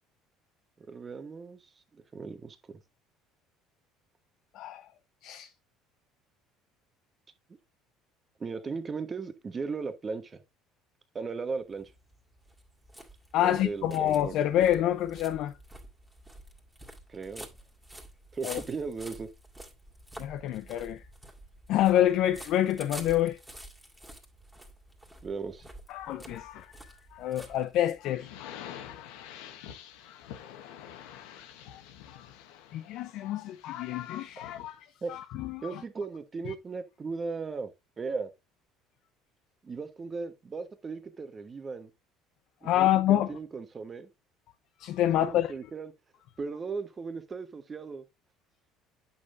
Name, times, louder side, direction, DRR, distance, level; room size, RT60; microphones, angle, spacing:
voice 1, 0.8-2.6 8.4-10.4 11.1-11.9 13.4-14.5 17.1-17.5 18.3-19.3 25.2-25.7 35.0-35.1 35.6-37.7 38.0-38.3 39.6-41.9 42.7-44.1 45.0-45.9 46.4-48.0, right 4 dB, 30° right, 1.2 m, -37 dB
voice 2, 4.5-4.9 5.2-5.5 13.3-15.5 18.4-18.6 20.2-21.0 21.7-23.4 25.9-29.2 29.6-29.7 31.7-31.8 32.1-32.3 32.7-35.8 36.5-36.6 42.6-43.3 44.8-45.5, left 12 dB, 65° left, 0.6 m, -28 dB
sound 1, 11.6-28.1, right 1 dB, 10° right, 2.2 m, -49 dB
sound 2, 28.1-34.8, left 10 dB, 85° left, 1.1 m, -47 dB
8.4 x 6.6 x 2.6 m
supercardioid pair, 95°, 0 cm